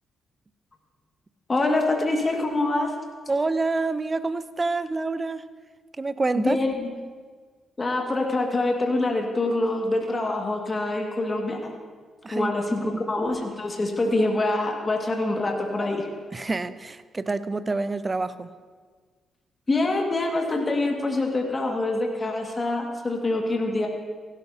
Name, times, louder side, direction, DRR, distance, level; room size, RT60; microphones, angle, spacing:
voice 1, 1.5-2.9 6.4-6.9 7.8-11.6 12.3-16.1 19.7-23.9, left 2 dB, 35° left, 2 dB, 1.8 m, -25 dB
voice 2, 3.3-5.4 6.0-6.6 12.2-13.0 16.3-18.5, right 3 dB, 30° right, 14 dB, 0.6 m, -27 dB
16.5 x 12.5 x 2.8 m, 1.5 s
hypercardioid pair, 40°, 0 cm